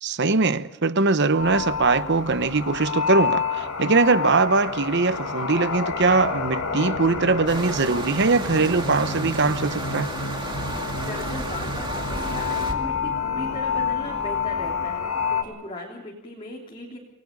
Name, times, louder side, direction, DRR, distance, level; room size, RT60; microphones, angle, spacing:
voice 1, 0.0-10.1, right 3 dB, 50° right, 0.9 m, -21 dB
sound 1, 1.4-15.4, left 5 dB, 75° left, 2.7 m, -28 dB
sound 2, 7.5-12.7, right 2 dB, 20° right, 2.2 m, -33 dB
voice 2, 10.9-17.0, left 1 dB, 25° left, 3.3 m, -37 dB
29.0 x 19.0 x 5.4 m
head